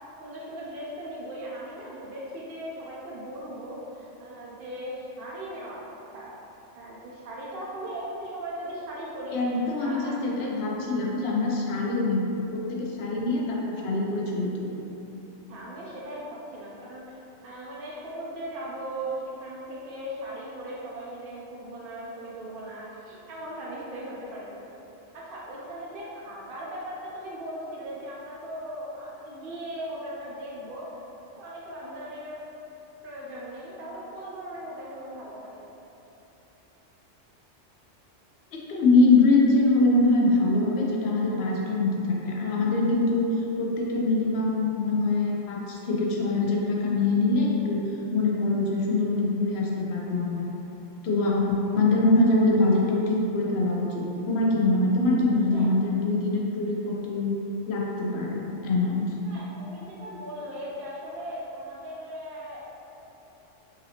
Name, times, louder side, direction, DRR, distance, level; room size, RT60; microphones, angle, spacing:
voice 1, 0.2-6.3 6.7-10.2 15.5-16.2 16.5-24.7 25.2-30.9 31.4-32.4 33.0-35.7 55.5-55.7 59.2-62.7, right 1 dB, 60° right, -6 dB, 0.6 m, -38 dB
voice 2, 9.3-12.2 12.5-14.7 38.7-43.2 43.6-47.8 48.1-50.5 51.0-57.4 57.7-59.1, left 2 dB, 65° left, -2 dB, 0.8 m, -24 dB
3.9 x 2.7 x 2.7 m, 2.9 s
omnidirectional pair, 1.3 m